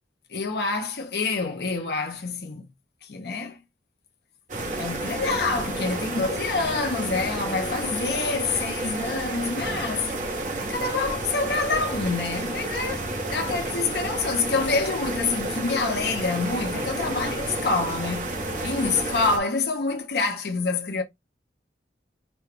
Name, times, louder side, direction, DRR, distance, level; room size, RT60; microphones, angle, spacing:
voice 1, 0.3-2.7 3.0-3.6 4.8-10.1 10.7-13.1 13.3-21.0, left 4 dB, 65° left, 0.7 m, -27 dB
sound 1, 4.5-19.4, right 2 dB, 45° right, 1.1 m, -31 dB
5.0 x 2.3 x 3.3 m
head